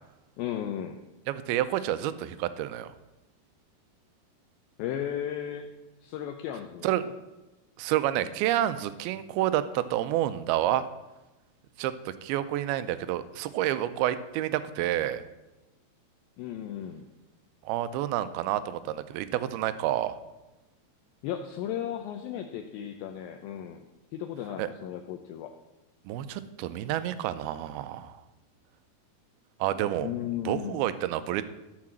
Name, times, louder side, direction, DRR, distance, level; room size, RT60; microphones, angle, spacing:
voice 1, 0.4-1.0 4.8-5.7 6.0-7.1 16.4-17.0 21.2-23.8 24.1-25.5 30.0-30.9, left 10 dB, 80° left, 5 dB, 2.1 m, -35 dB
voice 2, 1.3-2.9 6.8-7.0 7.8-10.9 11.8-15.2 17.7-20.2 24.6-24.7 26.1-28.2 29.6-30.1 30.5-31.4, right 13 dB, 80° right, 12 dB, 2.3 m, -29 dB
14.5 x 4.9 x 7.4 m, 1.0 s
omnidirectional pair, 4.8 m